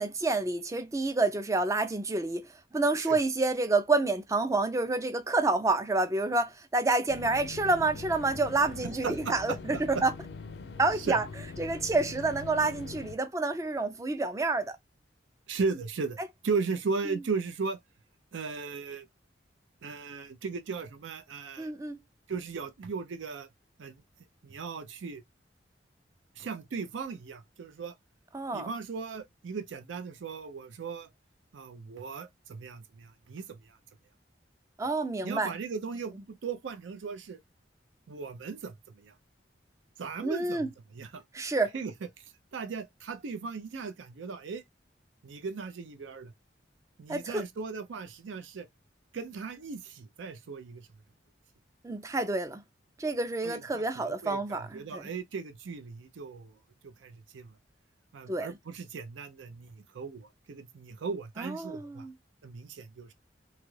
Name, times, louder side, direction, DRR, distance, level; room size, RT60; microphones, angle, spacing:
voice 1, 0.0-2.5 2.7-10.1 10.8-11.3 11.6-14.8 17.1-17.2 21.6-22.0 28.3-28.7 34.8-35.5 40.2-40.7 41.3-41.7 47.1-47.4 51.8-52.6 53.0-55.1 58.3-58.6 61.4-62.1, right 3 dB, 15° right, 0.3 m, -28 dB
sound 1, 7.1-13.1, left 4 dB, 60° left, 0.4 m, -43 dB
voice 2, 9.0-9.8 11.1-11.2 15.5-16.2 16.4-17.8 18.3-19.1 19.8-21.7 22.3-23.5 23.8-24.0 24.4-25.2 26.4-27.9 28.5-31.1 31.5-33.8 35.2-37.4 38.1-39.1 40.0-40.7 40.9-41.2 41.7-41.9 42.5-44.6 45.2-46.3 47.0-48.7 49.1-50.9 53.4-56.5 56.8-57.5 58.1-62.1 62.4-63.1, right 4 dB, 90° right, 0.5 m, -37 dB
2.9 x 2.3 x 3.1 m
head